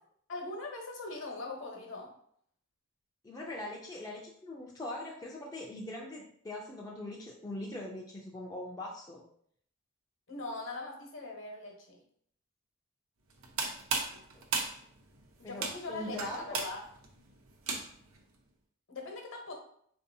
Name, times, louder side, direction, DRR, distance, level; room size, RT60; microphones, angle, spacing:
voice 1, 0.3-2.1 10.3-12.0 15.4-16.8 18.9-19.5, left 2 dB, 65° left, 1 dB, 0.9 m, -41 dB
voice 2, 3.2-9.2 14.3-14.5 15.4-16.6, left 1 dB, 20° left, -2 dB, 0.3 m, -41 dB
sound 1, 13.3-18.2, right 4 dB, 85° right, 0.6 m, -36 dB
3.8 x 2.6 x 2.6 m, 0.64 s
head